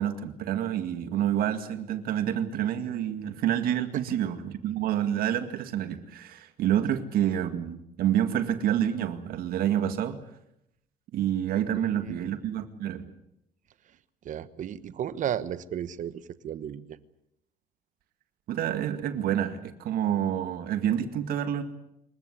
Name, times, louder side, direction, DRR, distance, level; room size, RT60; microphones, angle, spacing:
voice 1, 0.0-10.2 11.1-13.1 18.5-21.6, right 10 dB, 75° right, 9 dB, 2.1 m, -28 dB
voice 2, 11.7-12.4 14.2-17.0, right 9 dB, 55° right, 15 dB, 1.2 m, -34 dB
27.0 x 15.5 x 10.0 m, 0.79 s
cardioid pair, 125°, 16 cm